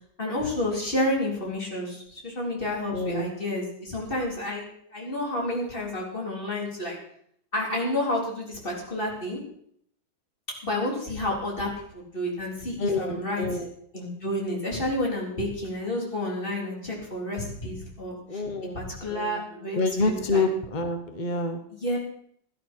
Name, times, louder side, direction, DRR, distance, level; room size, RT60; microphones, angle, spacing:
voice 1, 0.2-4.6 4.9-7.0 7.5-9.4 10.6-13.5 13.9-18.4 18.7-19.8 20.1-20.4 21.8-22.0, left 1 dB, 25° left, -3 dB, 4.0 m, -30 dB
voice 2, 2.9-3.3 12.8-13.7 18.3-18.8 19.1-19.4 19.8-21.6, left 3 dB, 45° left, 7 dB, 0.6 m, -27 dB
16.5 x 11.0 x 4.5 m, 0.67 s
omnidirectional pair, 2.3 m